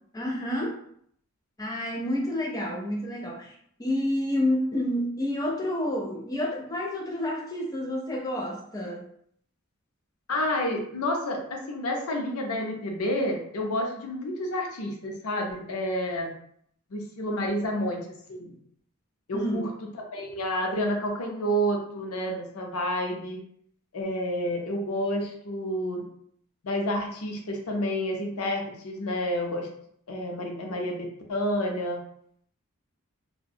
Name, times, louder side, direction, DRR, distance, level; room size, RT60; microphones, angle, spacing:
voice 1, 0.1-0.8 1.6-9.1 19.3-19.7, left 1 dB, 15° left, -1 dB, 0.4 m, -29 dB
voice 2, 10.3-16.3 16.9-18.6 19.3-19.7 20.1-23.4 23.9-26.1 26.6-29.7 30.1-32.0, equal, 90° left, 2 dB, 0.6 m, -29 dB
2.4 x 2.1 x 2.6 m, 0.67 s
head